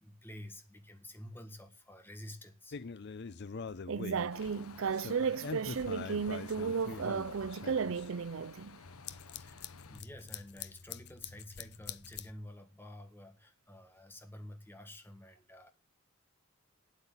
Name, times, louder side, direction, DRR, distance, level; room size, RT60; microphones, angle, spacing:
voice 1, 0.0-2.8 9.2-15.7, left 1 dB, 10° left, 1.5 m, -50 dB
sound 1, 2.7-4.5 4.9-8.1 8.8-12.3, left 5 dB, 50° left, 0.6 m, -44 dB
voice 2, 3.9-8.8, right 6 dB, 65° right, 0.5 m, -34 dB
sound 2, 4.3-10.0, left 5 dB, 85° left, 0.9 m, -53 dB
8.7 x 8.2 x 7.3 m
head